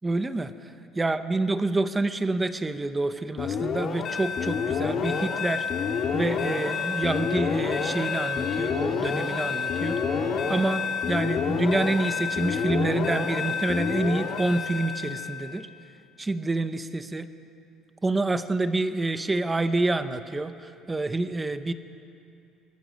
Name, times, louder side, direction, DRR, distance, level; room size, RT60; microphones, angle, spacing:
voice 1, 0.0-0.5 0.9-5.7 6.1-10.0 10.5-15.7 16.2-17.3 18.0-21.7, right 2 dB, 10° right, 10 dB, 0.8 m, -27 dB
sound 1, 3.4-15.5, left 6 dB, 40° left, 2.0 m, -28 dB
Bowed string instrument, 5.9-11.0, right 1 dB, 10° left, 3.5 m, -40 dB
28.0 x 20.5 x 6.5 m, 2.6 s
cardioid pair, 170°, 0 cm